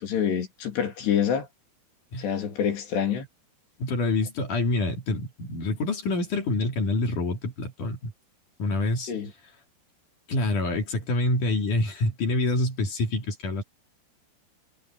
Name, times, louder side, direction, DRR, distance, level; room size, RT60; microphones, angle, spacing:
voice 1, 0.0-1.5 2.2-3.3 9.1-9.3, left 8 dB, 80° left, 5.3 m, -26 dB
voice 2, 3.8-8.1 8.6-9.1 10.3-13.6, left 2 dB, 50° left, 4.2 m, -26 dB
omnidirectional pair, 4.8 m